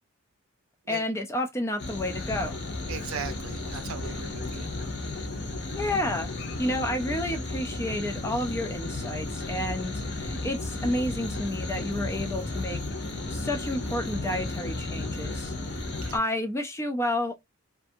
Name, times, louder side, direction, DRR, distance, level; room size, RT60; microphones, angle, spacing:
voice 1, 0.9-2.6 5.7-6.3 6.6-12.8 13.3-15.5 16.1-17.3, left 1 dB, 10° left, 0.3 m, -30 dB
sound 1, 1.8-16.2, left 2 dB, 50° left, 0.7 m, -34 dB
voice 2, 2.9-4.7 16.0-16.1, right 6 dB, 75° right, 0.6 m, -38 dB
2.6 x 2.4 x 2.6 m
head